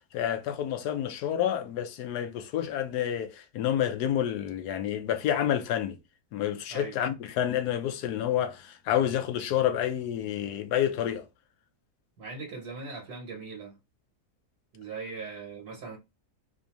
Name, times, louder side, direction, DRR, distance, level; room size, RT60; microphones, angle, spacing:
voice 1, 0.1-6.0 6.3-11.2, left 10 dB, 85° left, 1.2 m, -29 dB
voice 2, 6.7-7.0 12.2-13.7 14.7-16.0, right 4 dB, 70° right, 1.6 m, -40 dB
4.4 x 2.6 x 2.9 m
omnidirectional pair, 1.7 m